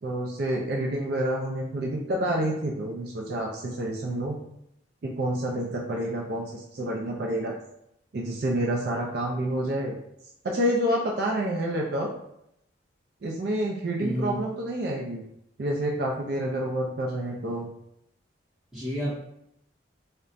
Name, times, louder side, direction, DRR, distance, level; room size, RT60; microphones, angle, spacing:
voice 1, 0.0-4.4 5.0-7.5 8.1-9.9 10.4-12.1 13.2-15.2 15.6-17.7, right 1 dB, 55° right, -1 dB, 0.4 m, -28 dB
voice 2, 14.0-14.4 18.7-19.1, equal, ahead, -8 dB, 1.0 m, -30 dB
2.4 x 2.1 x 3.9 m, 0.77 s
head